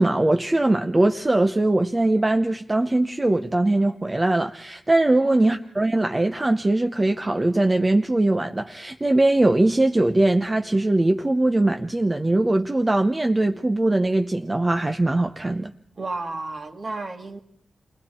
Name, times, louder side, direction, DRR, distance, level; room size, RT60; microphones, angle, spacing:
voice 1, 0.0-15.7, right 2 dB, 20° right, 0.8 m, -21 dB
voice 2, 5.2-5.7 16.0-17.4, right 3 dB, 40° right, 2.0 m, -33 dB
29.5 x 21.5 x 4.4 m
wide cardioid pair, 140°, 0 cm